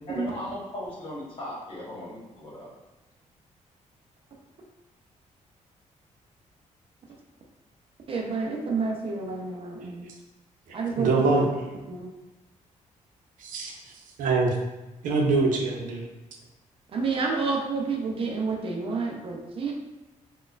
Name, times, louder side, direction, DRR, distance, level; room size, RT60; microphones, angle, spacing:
voice 1, 0.1-2.7, equal, 40° left, -6 dB, 1.2 m, -37 dB
voice 2, 8.1-10.0 10.7-11.5 11.9-12.1 16.9-19.7, right 4 dB, 45° right, 1 dB, 0.4 m, -29 dB
voice 3, 11.0-11.5 13.4-13.7 14.2-14.5 15.0-16.0, right 3 dB, 85° right, 0 dB, 0.6 m, -23 dB
4.0 x 2.2 x 2.4 m, 1.1 s
cardioid pair, 150°, 13 cm